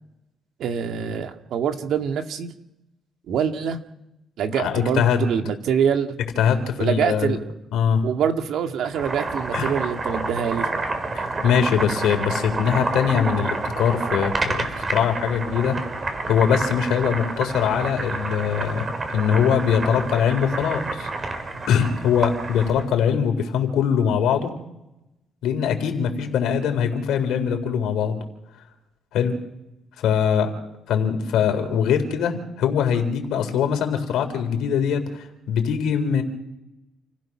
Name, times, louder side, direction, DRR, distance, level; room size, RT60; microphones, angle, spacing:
voice 1, 0.6-2.5 3.3-3.8 4.4-6.2 6.8-7.5 8.0-10.7, right 7 dB, 75° right, 6 dB, 2.0 m, -25 dB
voice 2, 4.5-5.3 6.4-7.4 7.7-8.0 9.5-9.7 11.1-15.8 16.3-18.8 19.1-21.1 21.7-24.5 25.4-28.2 29.1-29.4 30.0-30.5 30.9-36.2, left 7 dB, 85° left, 5 dB, 3.9 m, -22 dB
Boiling, 8.8-22.9, right 3 dB, 35° right, 4.2 m, -29 dB
29.0 x 16.0 x 6.2 m, 0.90 s
cardioid pair, 90°, 0 cm